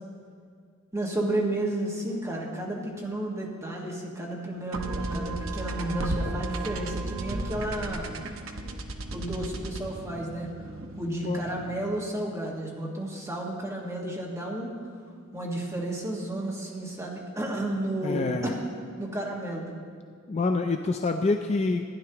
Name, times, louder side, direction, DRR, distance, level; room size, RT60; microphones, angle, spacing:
voice 1, 0.9-8.1 9.1-10.5 11.0-14.8 15.3-18.6 19.0-19.7, right 1 dB, 15° right, -3 dB, 1.6 m, -32 dB
sound 1, 4.7-12.1, right 1 dB, 70° right, 0.7 m, -35 dB
voice 2, 18.0-18.5 20.3-21.8, left 3 dB, 30° left, 5 dB, 0.4 m, -26 dB
15.5 x 10.0 x 2.9 m, 2.1 s
head